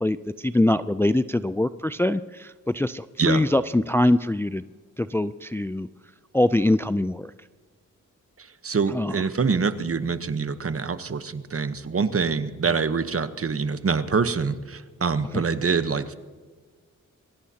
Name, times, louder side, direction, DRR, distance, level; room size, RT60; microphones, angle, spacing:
voice 1, 0.0-4.6 5.0-5.9 6.3-7.3 8.9-9.2 15.3-15.4, left 1 dB, 10° left, 13 dB, 0.4 m, -23 dB
voice 2, 8.6-16.1, right 5 dB, 45° right, 11 dB, 1.1 m, -25 dB
23.0 x 17.0 x 2.9 m, 1.4 s
cardioid pair, 60°, 31 cm